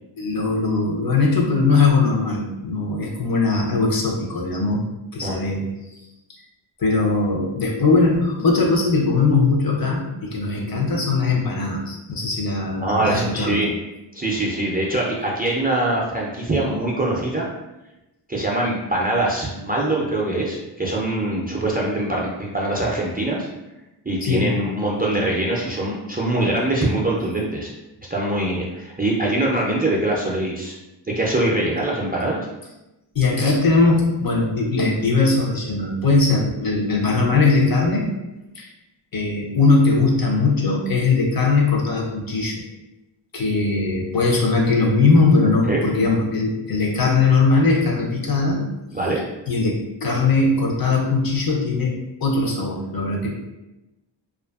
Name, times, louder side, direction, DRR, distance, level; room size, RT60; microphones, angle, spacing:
voice 1, 0.2-4.8 5.1-5.6 6.8-13.6 24.2-24.5 33.1-38.1 38.5-38.7 39.1-42.6 43.3-48.6 49.5-53.3, left 3 dB, 50° left, -2 dB, 0.6 m, -20 dB
voice 2, 12.8-13.7 14.1-17.5 18.3-23.5 24.1-27.7 28.1-30.8 31.1-32.4 45.7-45.8 48.9-49.2 49.6-49.7, right 1 dB, 20° right, -4 dB, 0.3 m, -23 dB
2.5 x 2.4 x 2.3 m, 0.98 s
wide cardioid pair, 75°, 45 cm